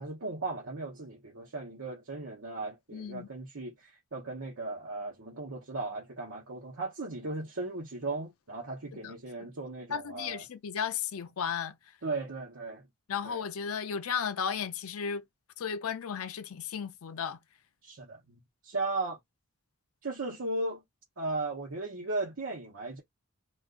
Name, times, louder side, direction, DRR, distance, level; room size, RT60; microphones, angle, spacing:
voice 1, 0.0-10.4 12.0-12.8 13.2-13.4 17.8-19.2 20.0-20.8 21.2-23.0, right 2 dB, 65° right, 0.9 m, -36 dB
voice 2, 2.9-3.3 8.9-9.1 9.9-11.8 13.1-15.2 15.6-17.4, left 7 dB, 80° left, 0.5 m, -34 dB
2.5 x 2.4 x 3.6 m
head